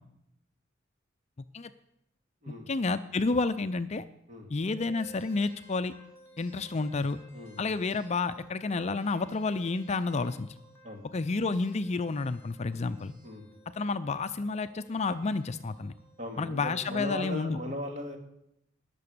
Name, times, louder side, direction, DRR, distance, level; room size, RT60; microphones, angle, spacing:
voice 1, 2.5-4.0 4.5-5.9 6.4-7.2 7.6-10.5 11.1-13.1 13.8-15.9 16.4-17.6, left 3 dB, 35° left, 11 dB, 0.5 m, -30 dB
sound 1, 4.7-17.0, equal, 15° left, 3.3 m, -57 dB
voice 2, 7.3-7.8 10.8-11.0 13.2-13.5 16.2-18.2, left 1 dB, 40° right, 2 dB, 2.5 m, -38 dB
19.5 x 6.9 x 6.7 m, 0.80 s
head